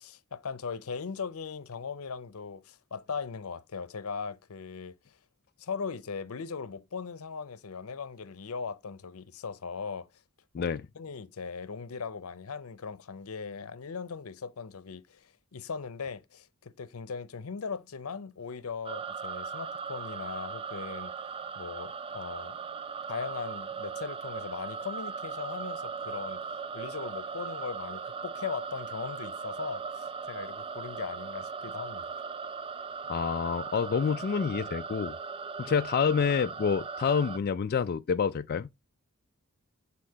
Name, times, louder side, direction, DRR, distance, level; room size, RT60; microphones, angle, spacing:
voice 1, 0.0-5.2 5.6-10.1 10.6-10.7 10.9-21.1 21.6-22.6 23.1-26.4 26.7-32.0, left 5 dB, 85° left, 0.7 m, -39 dB
sound 1, 18.8-37.4, right 5 dB, 25° right, 0.3 m, -38 dB
voice 2, 33.1-35.2 35.6-38.7, left 6 dB, 45° left, 0.3 m, -28 dB
8.5 x 4.2 x 2.8 m
head